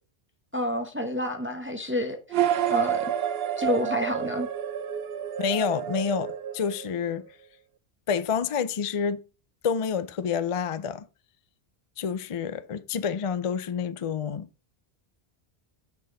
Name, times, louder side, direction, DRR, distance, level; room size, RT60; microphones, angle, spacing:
voice 1, 0.5-2.2 2.7-3.1 3.6-4.5, left 1 dB, 10° right, 0.9 m, -28 dB
sound 1, 2.3-7.1, right 10 dB, 70° right, 0.8 m, -29 dB
voice 2, 5.4-7.3 8.1-9.2 9.6-11.0 12.0-14.5, left 7 dB, 45° left, 0.4 m, -28 dB
6.5 x 6.1 x 3.8 m
omnidirectional pair, 1.1 m